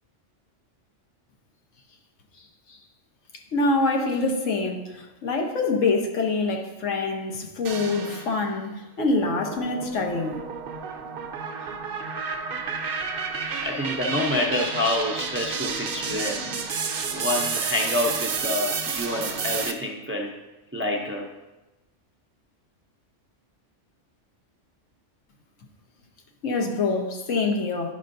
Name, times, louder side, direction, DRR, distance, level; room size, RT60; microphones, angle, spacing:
voice 1, 3.5-10.4 13.7-13.9 16.0-16.6 26.4-27.9, left 3 dB, 85° left, 1.3 m, -26 dB
sound 1, 7.6-8.5 9.0-19.7, right 5 dB, 55° right, 0.7 m, -31 dB
voice 2, 13.6-16.4 16.7-16.9 17.1-20.3 20.7-21.3 26.6-26.7, left 2 dB, 20° right, 0.4 m, -27 dB
10.5 x 5.4 x 2.6 m
omnidirectional pair, 1.3 m